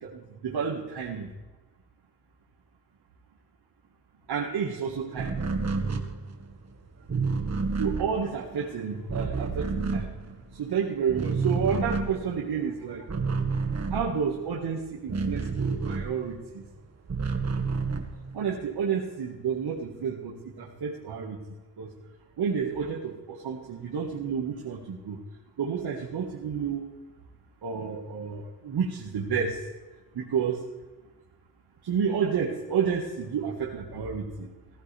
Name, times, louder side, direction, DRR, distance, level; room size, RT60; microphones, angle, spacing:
voice 1, 0.0-1.3 4.3-5.3 7.8-10.1 10.5-13.0 13.9-15.5 15.8-16.4 18.3-21.4 21.8-21.9 22.4-25.2 25.6-26.8 27.6-29.6 30.2-30.6 31.8-34.5, right 6 dB, 70° right, -2 dB, 1.9 m, -30 dB
sound 1, 5.2-10.8 11.0-16.5 16.8-18.7, right 4 dB, 40° right, 1.8 m, -30 dB
15.5 x 15.0 x 3.5 m, 1.2 s
cardioid pair, 90°, 40 cm